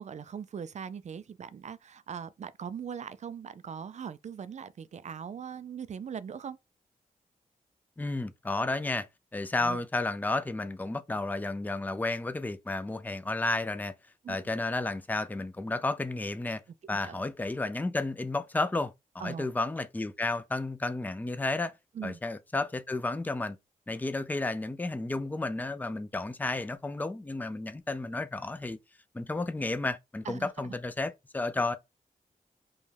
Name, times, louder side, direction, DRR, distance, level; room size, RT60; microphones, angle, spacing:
voice 1, 0.0-6.6 9.6-9.8 14.2-14.5 16.9-17.2 19.2-19.5 21.9-22.2 30.3-30.7, right 7 dB, 55° right, 0.4 m, -40 dB
voice 2, 8.0-9.1 9.3-13.9 14.3-16.6 16.9-21.7 22.0-23.6 23.9-28.8 29.1-31.8, left 2 dB, 10° left, 0.4 m, -32 dB
5.2 x 2.3 x 3.3 m
wide cardioid pair, 90°, 15 cm